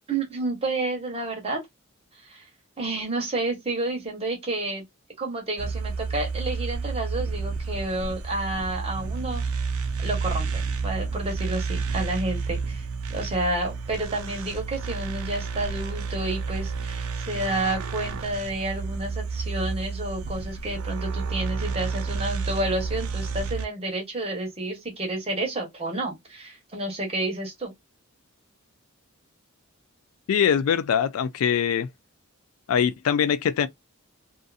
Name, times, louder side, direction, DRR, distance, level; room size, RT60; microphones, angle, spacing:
voice 1, 0.0-1.6 2.2-2.5 2.8-4.8 5.2-9.5 10.0-27.7, right 2 dB, 30° right, 1.0 m, -30 dB
sound 1, 5.6-23.7, right 4 dB, 80° right, 0.5 m, -30 dB
voice 2, 30.3-31.9 32.7-33.7, left 8 dB, 75° left, 0.3 m, -22 dB
2.6 x 2.5 x 2.3 m
head